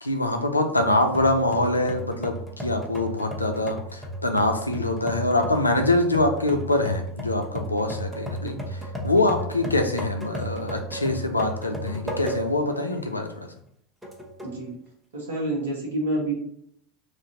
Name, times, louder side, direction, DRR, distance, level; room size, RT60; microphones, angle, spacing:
voice 1, 0.0-8.6 9.0-13.5, left 2 dB, 85° left, 5 dB, 0.3 m, -24 dB
sound 1, 0.8-12.7 13.2-13.3 14.0-14.6, right 1 dB, 5° right, 0.9 m, -34 dB
voice 2, 14.4-14.8 15.1-16.3, right 1 dB, 70° right, -2 dB, 1.1 m, -28 dB
3.0 x 2.5 x 2.8 m, 0.67 s
figure-of-eight pair, 80°, 0 cm